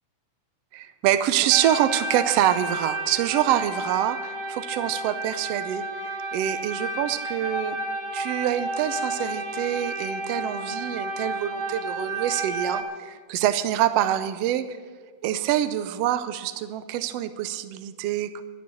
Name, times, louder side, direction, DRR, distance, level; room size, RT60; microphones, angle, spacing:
voice 1, 0.7-7.8 8.1-14.8 15.2-18.4, right 12 dB, 75° right, 11 dB, 1.5 m, -26 dB
sound 1, 1.5-12.8, right 1 dB, 35° right, 1.5 m, -32 dB
12.0 x 11.0 x 7.1 m, 1.5 s
omnidirectional pair, 3.5 m